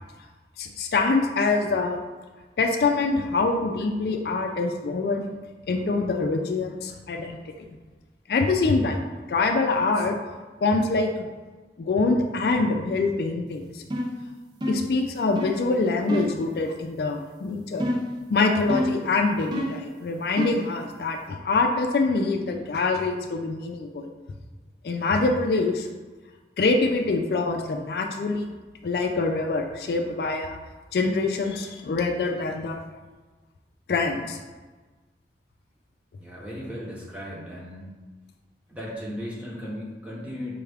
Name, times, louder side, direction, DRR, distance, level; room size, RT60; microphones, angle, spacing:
voice 1, 0.6-2.0 2.6-5.3 5.7-7.4 8.3-10.2 10.6-11.1 11.8-13.8 14.7-17.9 18.3-24.1 24.8-25.9 26.6-28.5 28.8-30.6 30.9-32.8 33.9-34.4, left 3 dB, 60° left, 4 dB, 0.3 m, -25 dB
sound 1, 13.9-14.2 14.6-14.9 15.4-15.6 16.1-16.4 17.8-18.2 18.7-19.1 19.5-19.9 20.4-20.7, equal, 25° right, 0.3 m, -28 dB
voice 2, 36.2-37.9 38.7-40.6, equal, 5° right, -5 dB, 0.8 m, -36 dB
5.3 x 2.4 x 3.3 m, 1.3 s
head